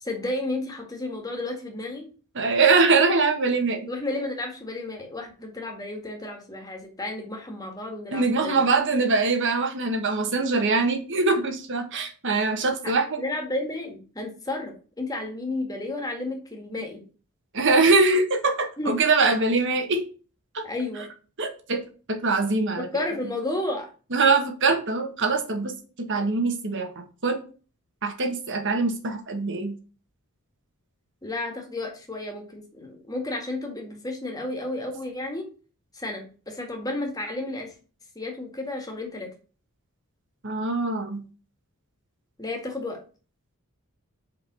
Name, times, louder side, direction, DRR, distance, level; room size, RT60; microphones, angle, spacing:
voice 1, 0.0-2.1 3.9-8.6 12.8-12.9 13.2-17.0 18.8-19.0 20.6-21.1 22.8-23.9 31.2-35.5 35.9-37.7 38.2-39.3 42.4-43.0, left 2 dB, 15° left, 2 dB, 1.9 m, -32 dB
voice 2, 2.3-3.9 8.1-13.2 17.5-20.0 20.5-20.6 21.4-21.8 22.1-22.9 24.1-27.4 28.0-29.7 40.4-41.2, right 3 dB, 55° right, 5 dB, 1.5 m, -23 dB
5.4 x 5.0 x 6.2 m, 0.37 s
head